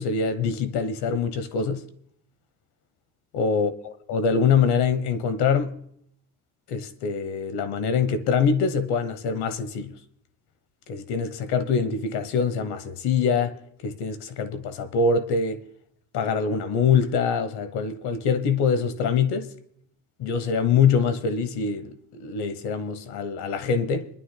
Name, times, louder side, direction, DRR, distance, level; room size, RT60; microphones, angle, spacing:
voice 1, 0.0-1.8 3.3-3.7 4.1-5.8 6.7-9.9 10.9-13.5 13.8-15.6 16.1-19.5 20.2-24.1, left 5 dB, 90° left, 1.2 m, -24 dB
26.5 x 11.5 x 2.2 m
cardioid pair, 130°, 39 cm